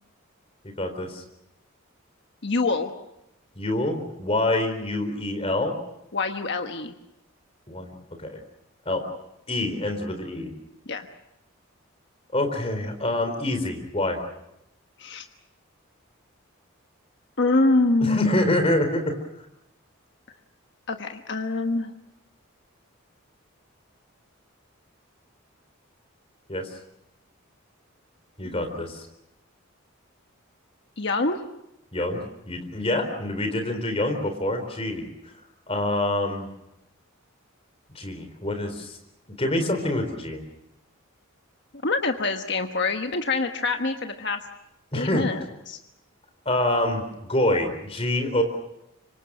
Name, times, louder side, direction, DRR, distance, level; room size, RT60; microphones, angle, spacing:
voice 1, 0.8-1.2 3.6-5.8 7.7-7.9 8.2-8.4 8.9-9.0 9.5-10.5 12.3-14.2 18.0-19.1 26.5-26.7 28.4-29.1 31.9-35.0 35.7-36.5 38.0-39.0 39.4-40.4 44.9-45.3 46.5-47.0 47.3-48.4, left 1 dB, 30° left, 6 dB, 4.0 m, -26 dB
voice 2, 2.4-2.9 6.1-6.9 10.9-11.1 15.0-15.2 17.4-18.6 20.9-21.9 28.4-28.6 31.0-31.4 41.8-44.4 44.9-45.8, left 3 dB, 55° left, 5 dB, 1.3 m, -25 dB
26.0 x 25.5 x 6.2 m, 0.85 s
head